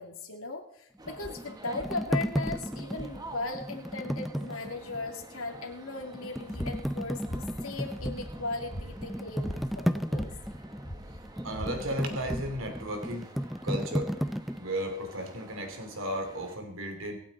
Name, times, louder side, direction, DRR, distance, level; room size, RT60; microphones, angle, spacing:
voice 1, 0.0-9.5 9.7-9.8 10.1-10.3, left 3 dB, 80° left, 1 dB, 2.7 m, -37 dB
sound 1, 1.0-16.6, right 1 dB, 20° right, 1.4 m, -49 dB
sound 2, 1.1-5.1 5.5-5.6 6.1-14.6, equal, ahead, 0.4 m, -34 dB
sound 3, 6.5-12.9, equal, 50° left, 3.8 m, -42 dB
voice 2, 11.4-13.3 13.6-14.1 14.6-17.2, right 1 dB, 65° right, 5 dB, 2.9 m, -34 dB
25.5 x 8.8 x 4.1 m, 0.72 s
head